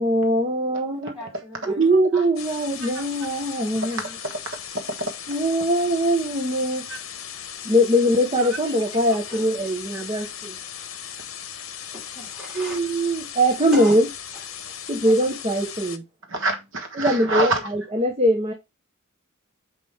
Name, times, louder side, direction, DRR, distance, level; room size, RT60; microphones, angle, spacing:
voice 1, 0.0-1.2 1.7-4.0 5.3-6.9 7.6-10.6 12.5-14.1 14.9-16.0 16.9-18.5, equal, 30° right, 1.1 m, -22 dB
voice 2, 1.2-1.8 4.8-4.9 9.3-9.5 11.9-12.8 13.7-14.0 15.0-15.1 17.0-17.1, equal, 5° right, 4.3 m, -37 dB
sound 1, 2.4-16.0, left 9 dB, 65° left, 0.9 m, -37 dB
voice 3, 3.7-5.1 6.9-7.0 16.3-17.7, right 2 dB, 60° right, 1.4 m, -27 dB
7.4 x 5.1 x 3.5 m
head